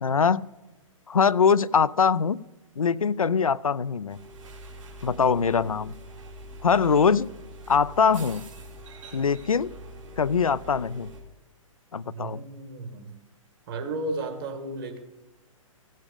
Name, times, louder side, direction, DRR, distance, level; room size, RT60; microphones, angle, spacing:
voice 1, 0.0-0.5 1.1-2.4 2.8-4.2 5.0-5.9 6.6-7.3 7.7-8.4 9.1-9.7 10.2-11.1 11.9-12.4, left 6 dB, 80° left, 17 dB, 0.4 m, -22 dB
sound 1, 4.1-11.2, right 1 dB, 65° right, 3.4 m, -44 dB
voice 2, 12.0-13.1 13.7-15.0, right 2 dB, 45° right, 5 dB, 2.0 m, -33 dB
16.0 x 7.4 x 5.3 m, 1.1 s
figure-of-eight pair, 120°, 18 cm